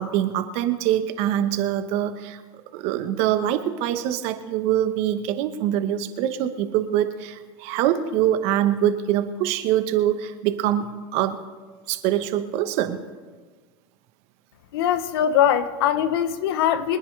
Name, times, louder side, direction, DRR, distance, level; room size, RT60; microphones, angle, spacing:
voice 1, 0.0-2.4 2.7-11.4 11.9-13.0, right 11 dB, 60° right, 1.2 m, -24 dB
voice 2, 14.7-17.0, left 9 dB, 80° left, 1.0 m, -21 dB
25.5 x 9.9 x 3.4 m
supercardioid pair, 125°, 13 cm